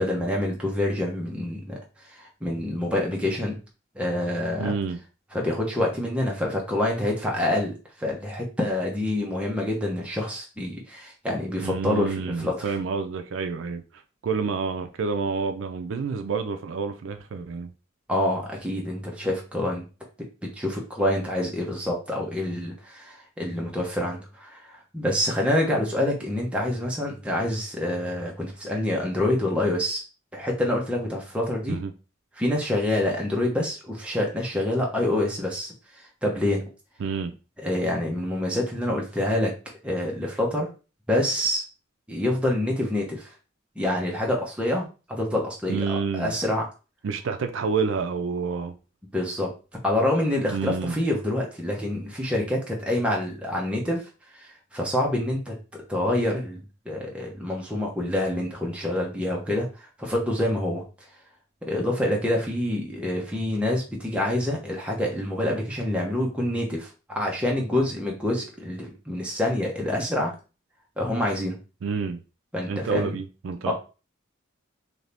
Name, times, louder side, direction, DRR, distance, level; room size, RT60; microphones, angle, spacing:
voice 1, 0.0-1.8 2.2-3.6 3.9-4.7 5.3-12.8 18.1-19.9 20.4-30.0 30.3-31.8 32.4-35.7 36.2-36.6 37.6-39.5 39.8-40.7 41.1-41.6 42.1-43.3 43.8-46.7 49.1-49.5 49.8-54.1 54.7-60.8 61.6-70.3 71.0-71.6 72.5-73.2 73.7-73.8, left 1 dB, 5° right, 0.8 m, -26 dB
voice 2, 4.6-5.0 11.6-13.8 14.2-17.7 31.7-31.9 37.0-37.3 45.7-46.3 47.0-48.7 50.5-51.0 71.8-72.2 72.7-73.7, right 5 dB, 70° right, 0.4 m, -28 dB
2.8 x 2.7 x 3.3 m
head